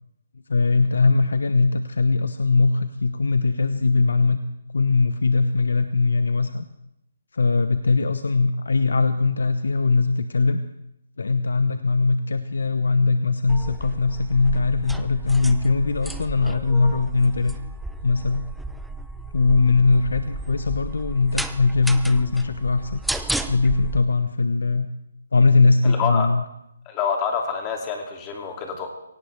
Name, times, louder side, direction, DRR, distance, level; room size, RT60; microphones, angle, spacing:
voice 1, 0.5-4.4 4.7-6.6 7.3-10.6 11.2-17.6 18.0-18.4 19.3-23.0 23.5-24.9 25.3-26.4, left 3 dB, 80° left, 10 dB, 0.9 m, -20 dB
sound 1, 13.5-24.0, right 1 dB, ahead, 0.5 m, -33 dB
voice 2, 25.8-26.3 26.9-28.9, left 6 dB, 20° left, 2 dB, 2.6 m, -27 dB
23.0 x 17.5 x 3.4 m, 0.82 s
hypercardioid pair, 155°, 0 cm